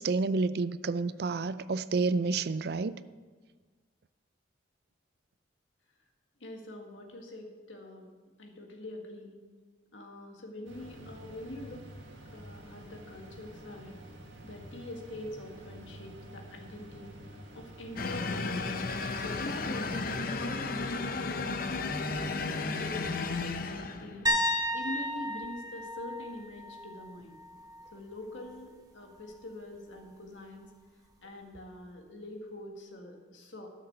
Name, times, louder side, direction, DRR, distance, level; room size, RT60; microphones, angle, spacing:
voice 1, 0.0-2.9, right 3 dB, 55° right, 0.4 m, -29 dB
voice 2, 6.4-8.1 8.4-9.3 9.9-11.9 12.3-14.0 14.4-17.1 17.5-18.8 19.2-20.0 20.3-23.2 23.7-24.3 24.7-27.4 27.9-30.7 31.2-33.7, left 1 dB, 80° left, 1.8 m, -44 dB
sound 1, 10.6-20.2, right 1 dB, 80° right, 1.8 m, -49 dB
sound 2, 18.0-24.3, left 3 dB, 50° left, 0.6 m, -33 dB
sound 3, 24.3-28.0 28.3-28.7 31.6-31.7, equal, 20° right, 1.0 m, -33 dB
12.5 x 6.5 x 6.6 m
head